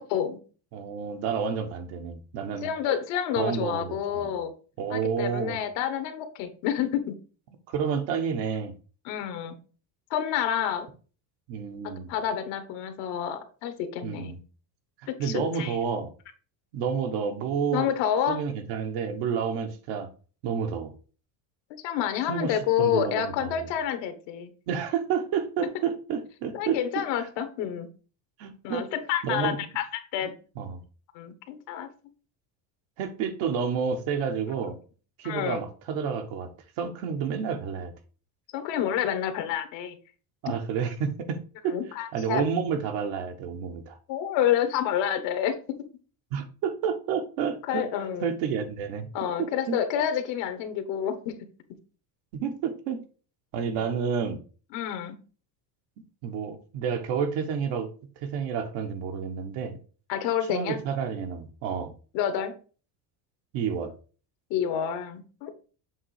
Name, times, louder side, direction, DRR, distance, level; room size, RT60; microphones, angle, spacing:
voice 1, 0.7-2.7 3.4-4.4 4.8-5.6 7.7-8.7 11.5-12.1 14.0-14.4 15.2-16.1 16.7-17.9 18.3-20.1 20.4-20.9 22.3-23.6 24.7-26.8 28.4-28.9 29.2-29.6 30.6-30.8 33.0-34.8 35.2-36.5 36.8-37.9 40.4-41.4 41.6-41.8 42.1-44.0 46.3-47.9 48.2-49.8 52.4-53.0 53.5-54.4 56.2-57.9 58.2-59.8 60.5-61.9 63.5-63.9, right 6 dB, 75° right, 6 dB, 1.4 m, -30 dB
voice 2, 2.6-4.5 4.9-7.2 9.0-9.5 10.1-10.9 11.8-14.3 15.1-15.8 17.7-18.4 21.7-24.5 26.5-27.9 28.6-30.3 31.1-31.9 35.2-35.6 38.5-40.0 41.7-42.4 44.1-45.6 47.7-48.3 49.1-51.3 53.6-53.7 54.7-55.2 60.1-60.8 62.1-62.5 64.5-65.5, left 9 dB, 70° left, 9 dB, 1.2 m, -28 dB
7.3 x 3.1 x 4.8 m, 0.38 s
cardioid pair, 125°, 45 cm